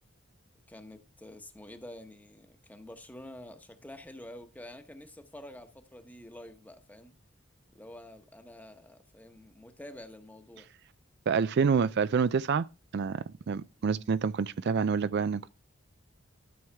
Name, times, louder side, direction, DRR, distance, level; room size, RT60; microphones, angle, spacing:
voice 1, 0.7-7.1 7.7-10.7 13.8-14.0, left 1 dB, 10° left, 1.0 m, -48 dB
voice 2, 11.3-12.7 12.9-15.5, right 5 dB, 55° right, 0.4 m, -27 dB
12.5 x 6.3 x 3.4 m
head